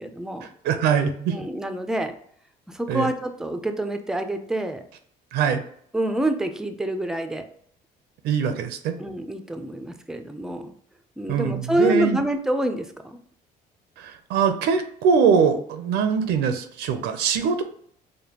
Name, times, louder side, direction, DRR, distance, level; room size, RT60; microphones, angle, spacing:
voice 1, 0.0-0.5 1.3-2.1 2.7-4.8 5.9-7.4 9.0-10.7 11.2-13.2, right 1 dB, 5° right, 7 dB, 0.4 m, -27 dB
voice 2, 0.6-1.4 2.9-3.1 5.3-5.6 8.2-8.9 11.3-12.2 14.0-17.6, right 6 dB, 80° right, 8 dB, 0.5 m, -22 dB
5.0 x 2.1 x 2.8 m, 0.63 s
cardioid pair, 110°, 17 cm